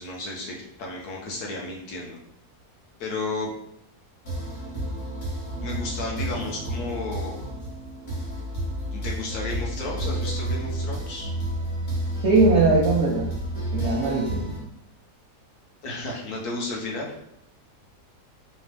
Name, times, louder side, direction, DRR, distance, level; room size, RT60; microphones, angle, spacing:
voice 1, 0.0-2.2 3.0-3.5 5.5-7.4 8.9-11.3 15.8-17.1, left 2 dB, 70° left, -2 dB, 1.3 m, -33 dB
sound 1, 4.2-14.6, right 1 dB, 50° left, 1.4 m, -30 dB
voice 2, 12.2-13.3 13.7-14.5, right 3 dB, 65° right, -3 dB, 0.7 m, -20 dB
3.5 x 2.9 x 3.3 m, 0.75 s
omnidirectional pair, 1.7 m